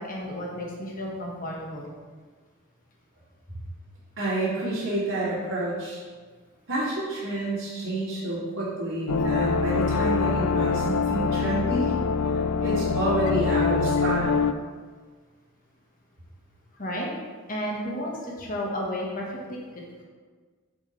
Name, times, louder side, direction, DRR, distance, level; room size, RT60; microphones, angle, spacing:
voice 1, 0.0-1.9 16.7-17.1 17.5-20.0, equal, 40° left, -2 dB, 1.2 m, -33 dB
voice 2, 4.2-6.0 6.7-11.9 12.6-14.5, right 1 dB, 70° right, -11 dB, 2.3 m, -29 dB
sound 1, 9.1-14.5, left 5 dB, 85° left, 0.4 m, -24 dB
8.4 x 7.0 x 3.1 m, 1.5 s
head